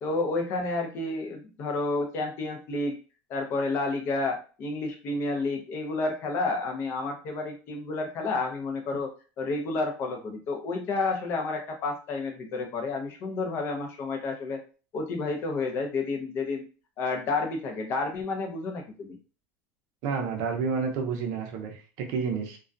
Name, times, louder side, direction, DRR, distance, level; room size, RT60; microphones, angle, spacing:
voice 1, 0.0-3.0 3.3-9.1 9.4-14.6 14.9-16.7 17.0-19.2, left 3 dB, 35° left, 3 dB, 0.5 m, -30 dB
voice 2, 20.0-22.6, right 5 dB, 50° right, 3 dB, 0.6 m, -30 dB
2.3 x 2.1 x 2.5 m, 0.36 s
cardioid pair, 170°, 7 cm